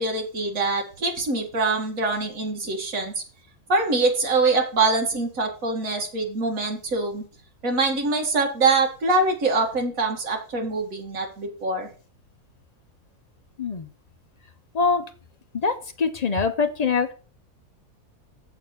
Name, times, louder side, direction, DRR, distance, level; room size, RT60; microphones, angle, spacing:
voice 1, 0.0-3.2 3.7-7.2 7.6-11.9, right 3 dB, 60° right, 1 dB, 2.1 m, -24 dB
voice 2, 16.0-17.1, left 4 dB, 75° left, 7 dB, 0.3 m, -22 dB
7.3 x 4.7 x 6.9 m, 0.38 s
omnidirectional pair, 1.6 m